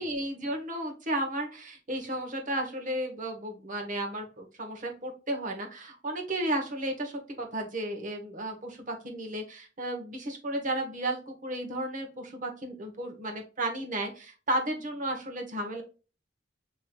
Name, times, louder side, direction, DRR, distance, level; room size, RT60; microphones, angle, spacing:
voice 1, 0.0-15.8, right 1 dB, 45° right, 2 dB, 1.2 m, -33 dB
5.6 x 3.1 x 2.3 m, 0.33 s
head